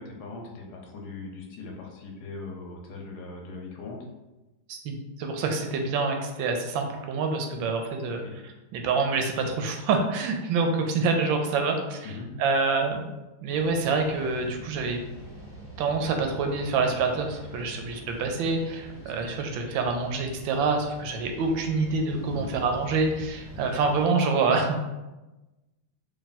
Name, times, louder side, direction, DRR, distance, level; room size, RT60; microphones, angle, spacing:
voice 1, 0.0-4.0 8.1-8.3 12.0-12.3 19.0-19.4 22.3-22.5, left 3 dB, 65° left, 0 dB, 1.1 m, -40 dB
voice 2, 4.7-12.1 12.4-13.1 13.4-15.0 15.8-24.8, right 4 dB, 75° right, 4 dB, 1.2 m, -26 dB
sound 1, 13.5-24.1, equal, ahead, 1.0 m, -44 dB
3.5 x 2.4 x 4.0 m, 1.1 s
omnidirectional pair, 2.3 m